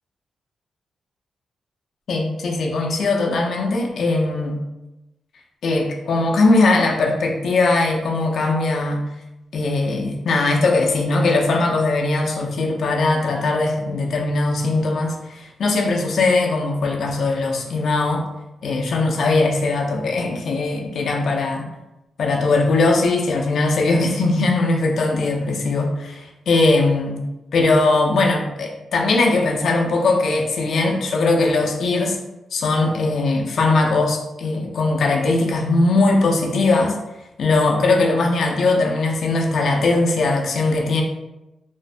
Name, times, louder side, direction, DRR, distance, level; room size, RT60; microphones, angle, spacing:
voice 1, 2.1-4.6 5.6-9.0 9.5-18.2 18.6-21.7 22.2-27.2 27.5-32.2 32.5-37.0 37.4-41.0, left 3 dB, 70° left, 1 dB, 0.4 m, -20 dB
2.4 x 2.1 x 2.4 m, 0.95 s
cardioid pair, 105°, 0 cm